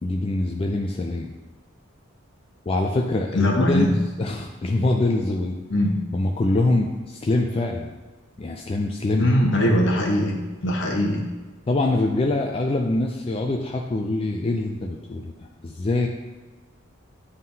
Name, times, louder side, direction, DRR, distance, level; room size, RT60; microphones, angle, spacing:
voice 1, 0.0-1.3 2.7-3.9 4.2-5.6 6.1-7.9 8.4-9.3 11.7-16.1, left 2 dB, 30° left, 2 dB, 0.3 m, -24 dB
voice 2, 3.3-3.9 5.7-5.9 9.2-10.4 10.6-11.2, left 1 dB, 60° left, -1 dB, 1.1 m, -21 dB
9.5 x 3.7 x 2.7 m, 1.3 s
head